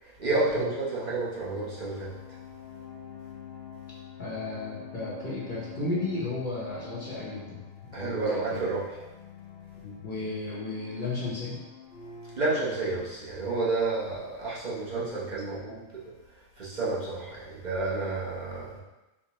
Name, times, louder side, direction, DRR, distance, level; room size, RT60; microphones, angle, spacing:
voice 1, 0.0-2.2 7.9-9.0 12.4-16.1 16.6-18.8, right 3 dB, 40° right, -8 dB, 0.7 m, -30 dB
sound 1, 1.4-13.1, left 8 dB, 75° left, 0.4 m, -46 dB
voice 2, 4.2-8.6 9.8-11.6 15.0-15.9, left 2 dB, 45° left, -7 dB, 0.7 m, -35 dB
4.5 x 2.1 x 2.9 m, 1.1 s
omnidirectional pair, 1.5 m